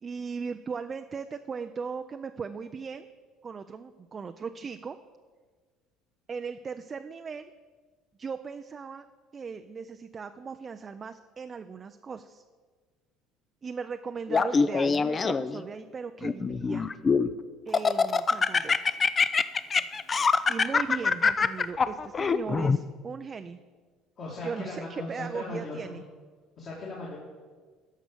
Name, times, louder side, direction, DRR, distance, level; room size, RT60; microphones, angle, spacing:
voice 1, 0.0-3.1 3.4-5.0 6.3-7.5 8.2-9.0 9.3-12.4 13.6-16.9 17.7-18.8 20.5-23.6 24.4-26.0, right 5 dB, 30° right, 8 dB, 0.4 m, -38 dB
Laughter, 14.3-15.6 16.2-17.3 17.7-22.8, left 5 dB, 30° left, 0.4 m, -24 dB
voice 2, 24.2-26.0 26.6-27.2, left 2 dB, 45° left, -4 dB, 2.5 m, -38 dB
13.0 x 5.0 x 6.8 m, 1.5 s
supercardioid pair, 100°, 0 cm